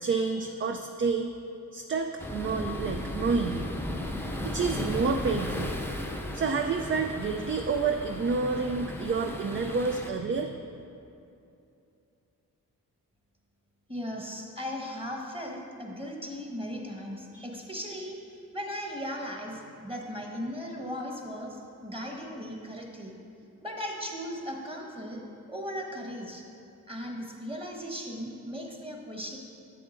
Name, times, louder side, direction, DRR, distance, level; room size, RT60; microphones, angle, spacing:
voice 1, 0.0-1.3 1.7-3.7 4.4-5.7 6.3-10.5, right 4 dB, 35° right, 5 dB, 0.4 m, -29 dB
sound 1, 2.2-10.1, left 1 dB, 5° left, 0.7 m, -35 dB
voice 2, 13.9-23.1 23.6-25.2 25.5-26.4 26.9-29.4, equal, 15° right, 0 dB, 1.3 m, -37 dB
8.0 x 7.7 x 2.6 m, 2.6 s
cardioid pair, 55°, 37 cm